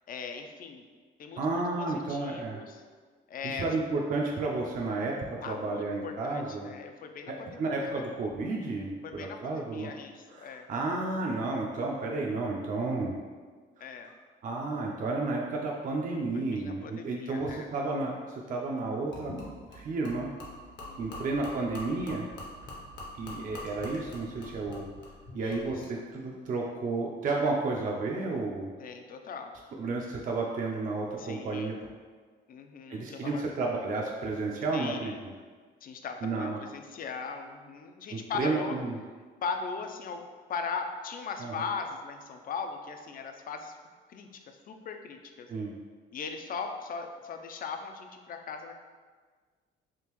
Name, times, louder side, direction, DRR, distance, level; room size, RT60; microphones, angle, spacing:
voice 1, 0.1-0.8 1.2-2.8 3.3-3.7 5.4-8.0 9.0-10.7 13.8-14.1 16.3-17.7 20.9-21.4 25.3-25.7 28.8-29.5 31.2-31.9 32.5-33.4 34.7-35.2 35.8-38.8 39.4-40.2 40.5-43.8 44.1-45.5 46.1-48.7, left 5 dB, 45° left, 5 dB, 0.4 m, -39 dB
voice 2, 1.4-2.6 3.4-6.7 7.3-9.9 10.3-13.1 14.4-19.3 19.7-20.3 21.0-22.3 23.2-24.9 25.3-28.7 29.8-31.8 32.9-35.1 36.2-36.6 38.1-39.0 41.4-41.5 45.5-45.8, right 3 dB, 40° right, -1 dB, 0.4 m, -32 dB
Gurgling / Liquid, 19.1-25.9, left 1 dB, 65° left, 0.9 m, -44 dB
3.5 x 2.4 x 3.0 m, 1.5 s
cardioid pair, 90°, 20 cm